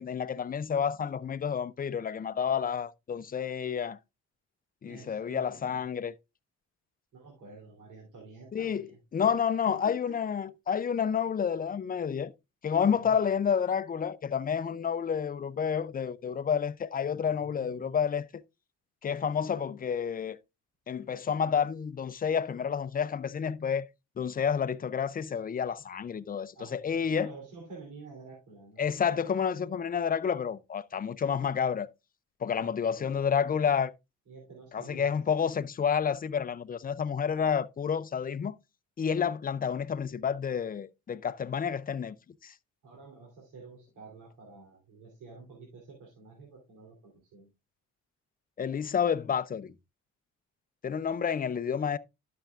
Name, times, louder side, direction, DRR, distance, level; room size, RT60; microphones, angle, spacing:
voice 1, 0.0-4.0 4.8-6.2 8.5-12.3 12.6-18.3 19.0-20.4 20.9-23.8 24.2-27.3 28.8-31.9 32.4-33.9 34.7-38.5 39.0-42.1 42.4-42.5 48.6-49.7 50.8-52.0, left 7 dB, 30° left, 0.5 m, -30 dB
voice 2, 4.8-5.8 7.1-9.0 9.6-10.2 13.0-13.3 17.1-18.0 19.4-19.6 26.5-28.8 32.6-33.2 34.3-35.5 42.8-47.5 51.5-51.6, right 3 dB, 80° right, 3.3 m, -50 dB
11.5 x 7.0 x 2.4 m
cardioid pair, 90°, 30 cm